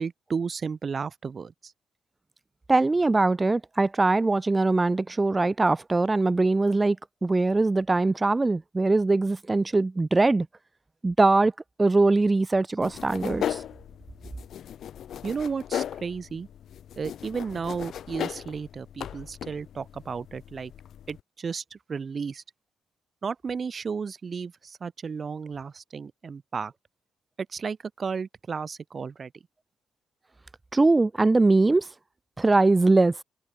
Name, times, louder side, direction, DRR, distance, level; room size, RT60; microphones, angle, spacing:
voice 1, 0.0-1.7 15.2-16.5 17.0-20.7 21.1-22.4 23.2-26.7 27.5-29.3, right 5 dB, 40° right, 3.3 m, -33 dB
voice 2, 2.7-7.0 7.2-10.5 11.0-11.5 11.8-13.6 30.7-31.9 32.4-33.2, right 3 dB, 20° right, 3.0 m, -22 dB
sound 1, 12.8-21.2, left 10 dB, 65° left, 7.6 m, -37 dB
cardioid pair, 90°, 0 cm